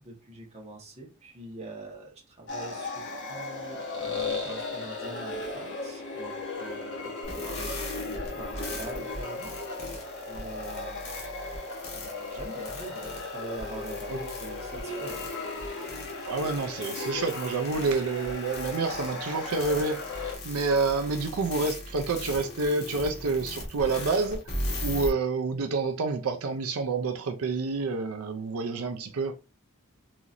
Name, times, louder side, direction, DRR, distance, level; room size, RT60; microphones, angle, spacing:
voice 1, 0.0-11.2 11.9-15.2, right 2 dB, 30° right, 1.2 m, -44 dB
sound 1, 2.5-20.4, left 3 dB, 60° left, 1.2 m, -36 dB
sound 2, 7.2-25.1, left 1 dB, 80° left, 1.4 m, -39 dB
voice 2, 16.3-24.4 24.8-29.3, right 3 dB, 85° right, 0.5 m, -28 dB
4.0 x 2.9 x 2.5 m
head